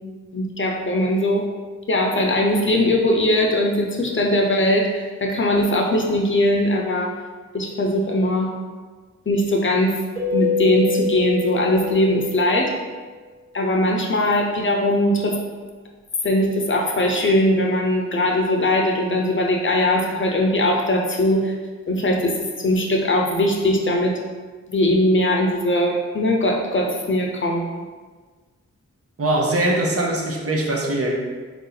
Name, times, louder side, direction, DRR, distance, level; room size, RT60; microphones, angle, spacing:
voice 1, 0.3-1.4 1.9-7.1 7.5-8.5 9.3-9.9 10.3-12.7 13.5-15.4 16.2-21.5 21.9-24.1 24.7-27.8, left 1 dB, 40° left, 0 dB, 0.6 m, -20 dB
Keyboard (musical), 10.2-12.7, left 3 dB, ahead, 1.1 m, -25 dB
voice 2, 29.2-31.2, right 1 dB, 55° right, -1 dB, 0.7 m, -21 dB
4.4 x 2.7 x 3.9 m, 1.4 s
wide cardioid pair, 110°, 29 cm